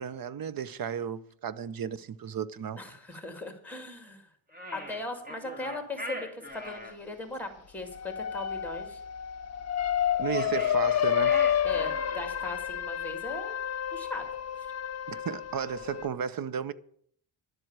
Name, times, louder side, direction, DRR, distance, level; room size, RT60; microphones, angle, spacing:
voice 1, 0.0-2.8 10.2-11.4 15.1-16.7, right 8 dB, 45° right, 0.7 m, -34 dB
voice 2, 2.8-4.3 4.7-9.0 11.6-13.6 13.9-14.3, left 2 dB, 5° left, 2.3 m, -39 dB
sound 1, 4.5-6.9 10.1-12.3, equal, 20° right, 1.9 m, -40 dB
sound 2, 7.8-16.1, left 9 dB, 35° left, 0.5 m, -30 dB
11.5 x 7.8 x 8.8 m
wide cardioid pair, 150°, 49 cm